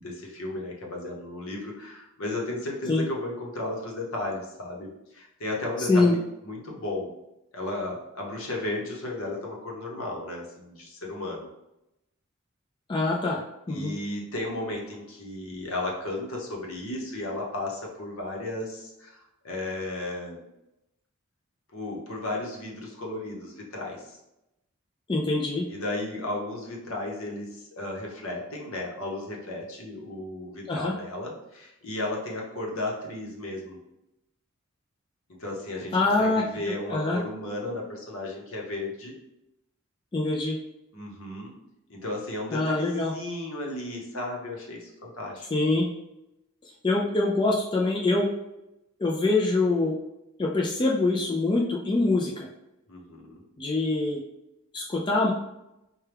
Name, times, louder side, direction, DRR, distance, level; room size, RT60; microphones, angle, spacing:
voice 1, 0.0-6.2 6.4-7.1 7.5-11.5 13.7-20.5 21.7-24.2 25.7-33.8 35.3-39.1 40.9-41.5 41.9-45.5 52.9-53.4, left 2 dB, 70° left, -1 dB, 0.9 m, -34 dB
voice 2, 5.8-6.2 12.9-13.4 13.7-13.9 25.1-25.6 30.7-30.9 35.9-37.2 40.1-40.6 42.5-43.1 45.5-45.9 46.6-48.3 49.0-50.0 50.4-52.5 53.6-54.2 54.7-55.3, left 2 dB, 20° left, -2 dB, 0.3 m, -24 dB
4.6 x 2.2 x 3.3 m, 0.89 s
head